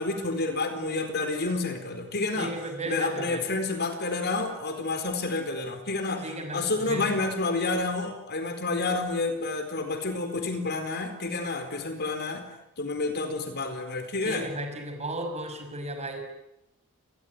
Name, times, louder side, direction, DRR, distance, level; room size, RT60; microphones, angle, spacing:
voice 1, 0.0-2.5 2.9-6.2 6.5-12.5 12.8-14.5, left 3 dB, 50° left, 7 dB, 4.4 m, -29 dB
voice 2, 2.3-3.5 6.2-7.3 14.2-16.2, right 1 dB, 30° right, 5 dB, 6.1 m, -35 dB
27.5 x 20.5 x 9.7 m, 0.86 s
head